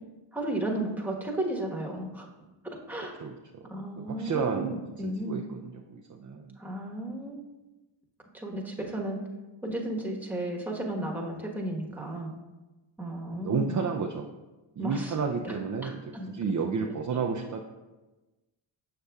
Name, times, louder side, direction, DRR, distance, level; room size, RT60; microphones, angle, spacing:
voice 1, 0.3-2.3 2.9-3.2 3.6-5.4 6.6-7.4 8.3-9.2 9.6-12.3 13.0-13.9 14.8-15.1 15.4-15.5 15.8-16.3, right 1 dB, 5° right, -1 dB, 1.2 m, -34 dB
voice 2, 3.2-3.6 4.0-6.6 13.3-14.2 14.8-16.0 16.3-17.6, right 5 dB, 40° right, 2 dB, 0.5 m, -31 dB
6.8 x 6.5 x 2.4 m, 1.1 s
cardioid pair, 55°, 50 cm